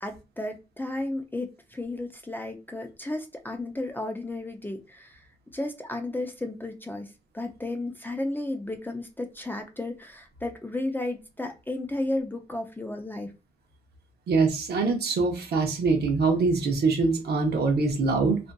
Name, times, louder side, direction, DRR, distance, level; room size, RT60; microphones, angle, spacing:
voice 1, 0.0-5.1 5.5-7.1 7.3-13.3, left 2 dB, 10° left, 0.4 m, -33 dB
voice 2, 14.3-18.4, right 4 dB, 85° right, 0.8 m, -24 dB
2.5 x 2.5 x 2.2 m
cardioid pair, 85°, 16 cm